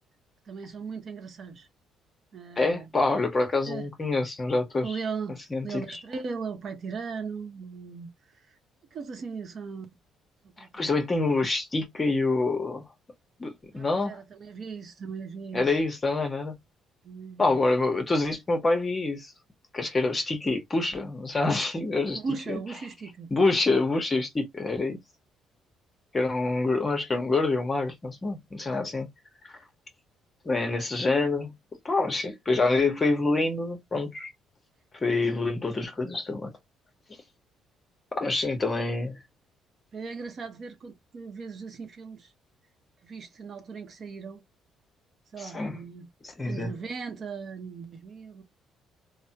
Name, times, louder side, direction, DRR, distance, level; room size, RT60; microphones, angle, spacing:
voice 1, 0.4-1.7 2.3-2.9 3.6-3.9 4.8-5.4 5.6-8.6 8.9-10.0 10.4-11.0 13.7-15.8 17.0-17.6 21.8-23.3 39.9-42.3 43.0-44.4 45.3-46.1 46.5-48.4, right 5 dB, 45° right, 0.9 m, -38 dB
voice 2, 2.6-4.9 5.5-6.0 10.7-12.8 13.4-14.2 15.5-16.6 17.4-19.3 19.7-22.2 22.5-22.6 23.3-25.0 26.1-29.1 30.4-31.5 31.8-34.3 35.0-36.5 38.1-39.2 45.4-45.8 46.4-46.7, left 3 dB, 25° left, 1.0 m, -26 dB
3.4 x 2.1 x 2.8 m
cardioid pair, 110°, 0 cm